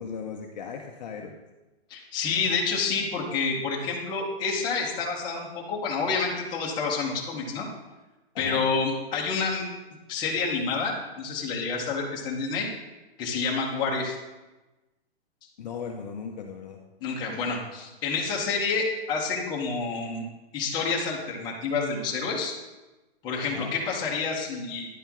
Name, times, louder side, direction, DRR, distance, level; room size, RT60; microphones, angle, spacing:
voice 1, 0.0-1.4 8.3-8.6 15.6-16.8 23.5-23.7, left 6 dB, 40° left, 2 dB, 0.6 m, -37 dB
voice 2, 1.9-7.7 8.4-9.6 10.1-12.7 13.2-14.2 17.0-20.2 20.5-22.5 23.2-24.9, left 4 dB, 15° left, -3 dB, 0.9 m, -28 dB
10.0 x 4.4 x 3.5 m, 1.1 s
hypercardioid pair, 165°, 32 cm